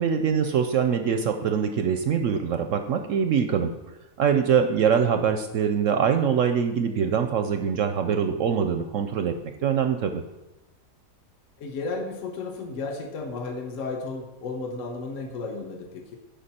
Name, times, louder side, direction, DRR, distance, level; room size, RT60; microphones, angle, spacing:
voice 1, 0.0-3.7 4.2-9.3 9.6-10.2, right 7 dB, 65° right, 7 dB, 0.8 m, -23 dB
voice 2, 11.6-16.2, left 3 dB, 55° left, 3 dB, 1.3 m, -33 dB
10.5 x 5.8 x 4.2 m, 1.0 s
omnidirectional pair, 1.7 m